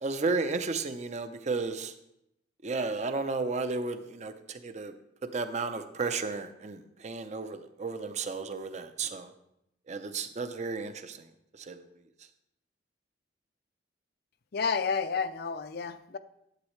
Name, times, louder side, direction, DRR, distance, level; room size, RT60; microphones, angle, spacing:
voice 1, 0.0-1.9 2.6-4.9 5.3-9.3 9.9-11.2 11.6-11.8, right 4 dB, 40° right, 9 dB, 0.6 m, -33 dB
voice 2, 14.5-16.2, left 5 dB, 55° left, 11 dB, 0.5 m, -30 dB
11.5 x 8.0 x 3.2 m, 0.80 s
head